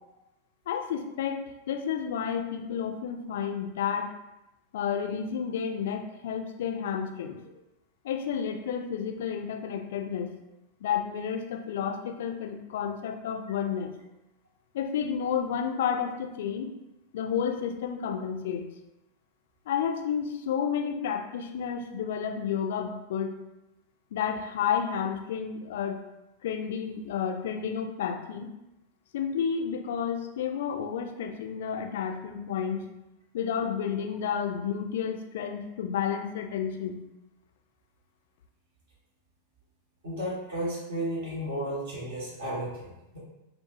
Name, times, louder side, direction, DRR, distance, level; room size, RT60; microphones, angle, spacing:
voice 1, 0.7-4.1 4.7-7.4 8.0-10.4 10.8-13.9 14.7-16.7 17.1-18.6 19.7-23.4 24.1-26.0 26.4-28.5 29.1-32.9 33.3-37.0, left 7 dB, 55° left, 4 dB, 0.3 m, -31 dB
voice 2, 40.0-43.2, right 1 dB, 60° right, -7 dB, 1.0 m, -33 dB
2.6 x 2.1 x 2.8 m, 0.93 s
figure-of-eight pair, 90°, 0 cm